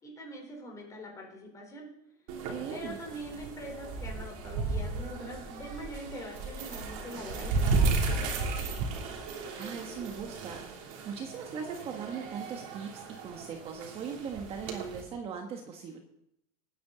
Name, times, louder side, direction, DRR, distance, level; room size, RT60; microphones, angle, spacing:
voice 1, 0.0-1.9 2.7-8.8, equal, 15° left, 0 dB, 4.0 m, -43 dB
sound 1, 2.3-15.0, right 3 dB, 65° right, 3.1 m, -34 dB
voice 2, 2.5-3.0 9.5-16.0, right 6 dB, 30° right, 3 dB, 1.3 m, -40 dB
20.0 x 9.6 x 4.0 m, 0.77 s
supercardioid pair, 165°, 19 cm